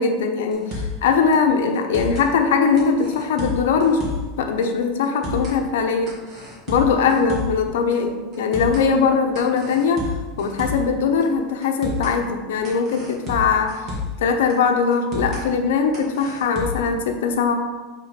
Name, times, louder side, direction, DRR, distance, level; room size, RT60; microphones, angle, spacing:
voice 1, 0.0-4.0 4.4-6.2 6.7-10.1 10.4-13.9 14.2-17.5, left 5 dB, 85° left, 5 dB, 0.8 m, -20 dB
sound 1, 0.5-1.0 1.3-1.4 1.7-2.3 2.8-4.3 4.6-4.7 5.0-5.6 6.1-7.6 7.9-8.0 8.3-8.9 9.3-10.9 11.2-11.3 11.6-12.2 12.6-14.2 14.5-14.6 14.9-15.4 15.9-16.9, left 3 dB, 35° right, 1.9 m, -30 dB
5.6 x 3.7 x 5.1 m, 1.3 s
supercardioid pair, 140°, 0 cm